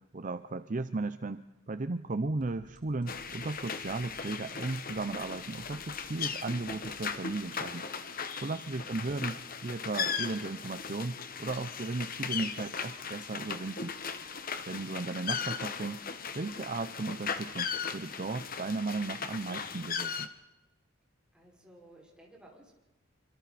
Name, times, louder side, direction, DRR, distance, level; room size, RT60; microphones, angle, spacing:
voice 1, 0.0-7.8 8.1-13.9 14.7-16.0 16.3-20.3, right 3 dB, 40° right, 11 dB, 0.6 m, -36 dB
sound 1, 2.4-8.0, equal, 25° left, 3.8 m, -61 dB
sound 2, 3.1-20.3, left 6 dB, 45° left, 1.3 m, -38 dB
voice 2, 21.3-22.7, right 1 dB, 5° right, -3 dB, 5.3 m, -57 dB
26.5 x 25.5 x 4.2 m, 1.1 s
head